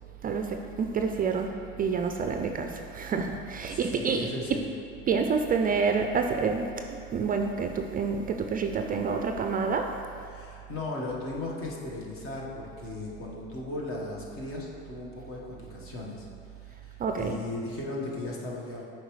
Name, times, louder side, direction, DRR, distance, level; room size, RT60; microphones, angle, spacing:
voice 1, 0.2-4.6 5.1-6.7 7.1-9.9 17.0-17.4, right 5 dB, 30° right, 5 dB, 0.4 m, -28 dB
voice 2, 3.7-4.6 10.3-16.3 16.6-18.8, left 2 dB, 45° left, -3 dB, 1.4 m, -37 dB
7.8 x 4.8 x 3.2 m, 2.5 s
supercardioid pair, 90°, 30 cm